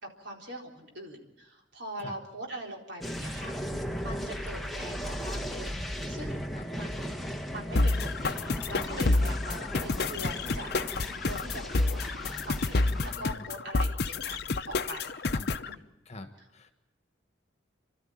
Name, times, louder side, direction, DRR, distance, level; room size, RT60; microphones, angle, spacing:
voice 1, 0.0-3.6 4.0-11.0 11.2-12.0 12.4-14.4 14.7-15.2 15.6-15.8, equal, 65° right, 0 dB, 4.1 m, -42 dB
sound 1, 3.0-13.1, equal, ahead, 1.1 m, -37 dB
sound 2, 7.7-15.7, left 2 dB, 55° left, 0.7 m, -29 dB
voice 2, 12.8-13.5 15.3-15.5 16.0-16.7, left 2 dB, 35° left, 7 dB, 1.6 m, -45 dB
29.5 x 13.0 x 8.7 m, 0.98 s
head